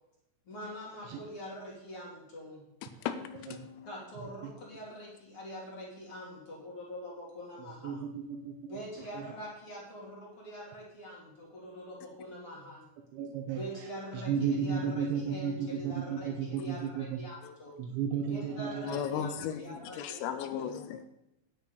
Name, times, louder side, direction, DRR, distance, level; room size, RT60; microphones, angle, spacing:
voice 1, 0.5-2.6 3.8-8.0 8.7-12.8 13.5-17.8 18.3-20.8, equal, 35° left, -4 dB, 2.6 m, -44 dB
voice 2, 2.8-3.9 16.6-16.9 17.4-17.5 18.8-21.1, left 9 dB, 80° left, 9 dB, 3.2 m, -37 dB
voice 3, 4.2-4.5 7.8-8.8 9.1-9.3 13.1-17.2 17.8-19.3, right 7 dB, 75° right, 4 dB, 2.9 m, -34 dB
10.0 x 9.6 x 5.1 m, 0.85 s
omnidirectional pair, 6.0 m